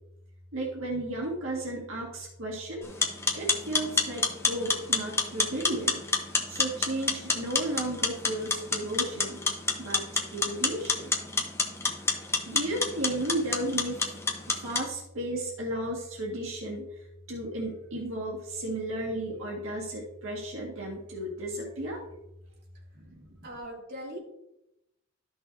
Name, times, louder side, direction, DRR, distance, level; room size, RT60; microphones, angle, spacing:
voice 1, 0.5-2.8 3.3-6.0 6.5-9.4 9.8-10.0 10.3-11.1 12.2-14.2 14.5-16.9 17.3-22.0 23.1-23.2, right 1 dB, 90° right, -3 dB, 1.9 m, -34 dB
sound 1, 2.8-14.9, left 3 dB, 15° left, 1.0 m, -29 dB
voice 2, 23.4-24.2, equal, 55° right, -4 dB, 2.8 m, -40 dB
13.5 x 6.1 x 2.7 m, 0.88 s
head